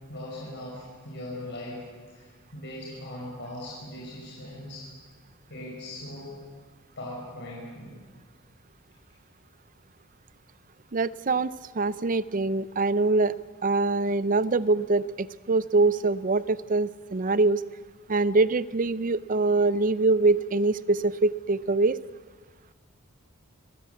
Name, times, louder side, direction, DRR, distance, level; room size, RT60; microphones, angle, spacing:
voice 1, 0.1-1.8 2.1-4.8 5.5-6.3 7.0-7.9, left 1 dB, 55° left, -4 dB, 5.9 m, -39 dB
voice 2, 10.9-13.3 13.6-17.6 18.1-22.0, right 3 dB, 40° right, 17 dB, 0.6 m, -24 dB
25.5 x 16.5 x 8.4 m, 1.5 s
head